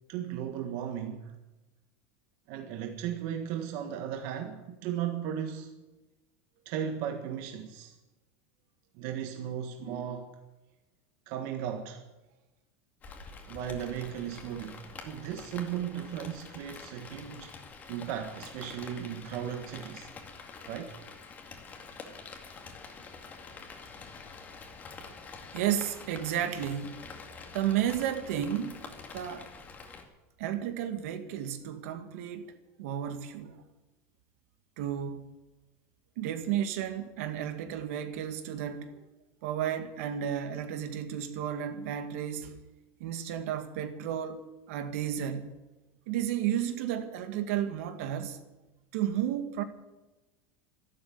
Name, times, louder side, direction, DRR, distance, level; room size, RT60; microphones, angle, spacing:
voice 1, 0.1-1.3 2.5-5.7 6.6-8.0 8.9-10.3 11.3-12.0 13.5-20.1 20.7-20.9, right 9 dB, 50° right, 1.6 m, -36 dB
Rain, 13.0-30.0, left 4 dB, 20° left, 2.2 m, -47 dB
voice 2, 25.5-27.0 27.5-28.8 29.1-29.5 30.4-32.5 32.8-33.6 34.8-35.2 36.2-39.1 39.4-42.6 43.0-44.4 44.7-45.5 46.1-48.4 48.9-49.6, right 10 dB, 70° right, 2.0 m, -32 dB
13.0 x 12.0 x 8.6 m
supercardioid pair, 160°, 8 cm